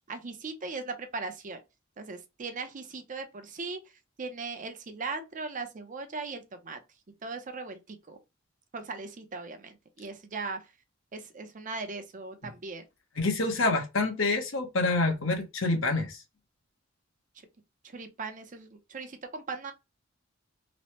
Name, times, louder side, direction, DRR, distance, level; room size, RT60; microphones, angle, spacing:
voice 1, 0.1-1.6 2.0-3.8 4.2-6.8 7.2-8.2 8.7-10.6 11.1-12.8 17.9-19.7, right 4 dB, 40° right, 0.6 m, -38 dB
voice 2, 13.2-16.2, left 3 dB, 70° left, 0.9 m, -27 dB
3.1 x 2.1 x 2.8 m
head